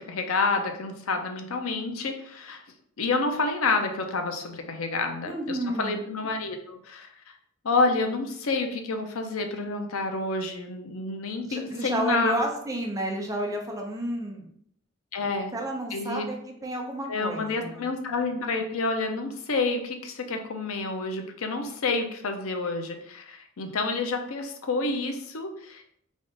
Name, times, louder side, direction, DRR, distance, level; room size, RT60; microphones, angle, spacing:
voice 1, 0.0-2.6 3.0-7.1 7.6-12.3 15.1-15.5 15.9-16.3 17.1-25.8, left 3 dB, 85° left, 5 dB, 0.6 m, -29 dB
voice 2, 5.2-6.0 11.5-14.5 15.5-17.9, right 1 dB, 15° right, 1 dB, 0.6 m, -31 dB
3.5 x 2.5 x 3.8 m, 0.68 s
head